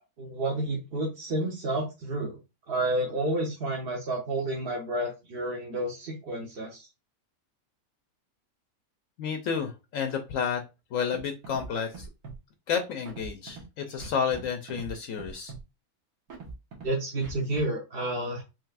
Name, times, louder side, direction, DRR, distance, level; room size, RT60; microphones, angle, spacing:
voice 1, 0.2-2.4 2.7-6.9 16.8-18.4, right 1 dB, 50° right, -1 dB, 0.9 m, -30 dB
voice 2, 9.2-10.6 10.9-12.1 12.7-15.5, left 6 dB, 70° left, 6 dB, 1.0 m, -31 dB
Scratching (performance technique), 11.1-11.2 11.4-11.7 11.9-12.4 13.0-13.6 14.0-14.4 14.7-14.9 15.2-15.6 16.3-16.9 17.2-17.6, right 4 dB, 80° right, 1.7 m, -42 dB
4.6 x 3.1 x 2.4 m, 0.26 s
omnidirectional pair, 1.5 m